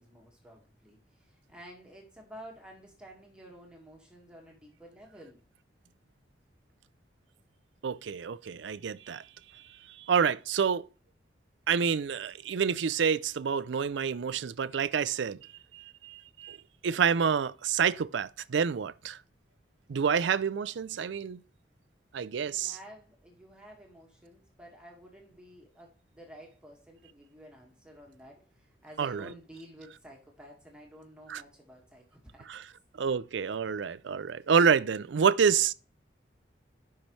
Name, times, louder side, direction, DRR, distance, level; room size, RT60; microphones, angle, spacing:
voice 1, 0.0-5.4 22.4-32.5, equal, 5° right, 1.7 m, -51 dB
voice 2, 7.8-9.2 10.0-10.8 11.7-15.4 15.7-16.6 16.8-19.2 19.9-21.4 22.1-22.8 29.0-29.3 31.3-31.4 32.5-32.6 33.0-35.7, right 6 dB, 85° right, 0.4 m, -28 dB
13.0 x 5.8 x 3.2 m
head